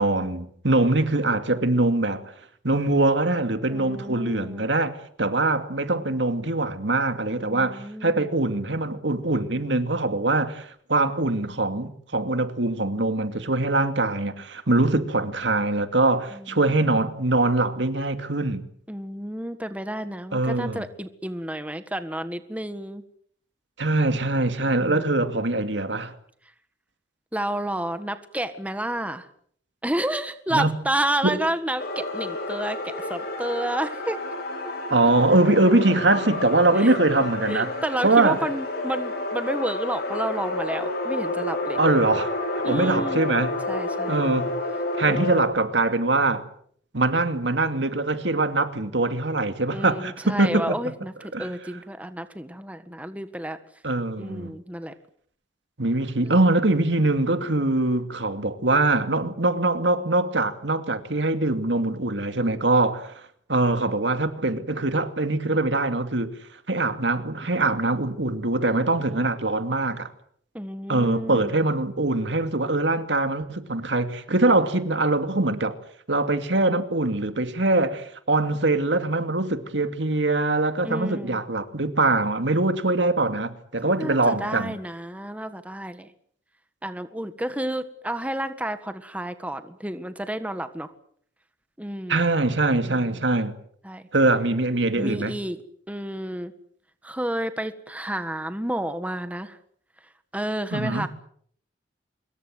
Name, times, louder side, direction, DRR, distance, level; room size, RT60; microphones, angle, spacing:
voice 1, 0.0-2.2 2.6-18.6 20.3-20.8 23.8-26.1 30.5-30.7 31.2-31.4 34.9-37.7 38.0-38.4 41.8-42.3 42.7-43.6 44.1-44.5 45.0-46.4 46.9-50.8 51.3-51.5 53.8-54.6 55.8-63.2 63.5-66.3 66.7-70.1 70.9-75.8 76.1-84.8 92.1-93.5 94.1-95.3 100.7-101.0, right 2 dB, 70° right, 2.5 m, -23 dB
voice 2, 3.7-4.7 7.4-8.3 16.3-16.6 18.9-23.0 24.8-25.3 27.3-29.3 29.8-34.2 36.8-37.0 37.4-41.8 42.6-43.2 43.7-44.3 45.1-45.5 49.7-53.6 54.2-54.9 56.2-56.3 70.5-71.6 80.8-81.4 83.8-86.1 86.8-90.9 91.8-92.2 92.8-93.2 93.8-94.0 94.9-95.6 95.9-96.5 97.0-99.6 100.3-101.1, right 1 dB, 10° right, 1.6 m, -31 dB
sound 1, 31.8-45.4, left 2 dB, 60° left, 7.0 m, -30 dB
25.5 x 22.5 x 7.8 m
head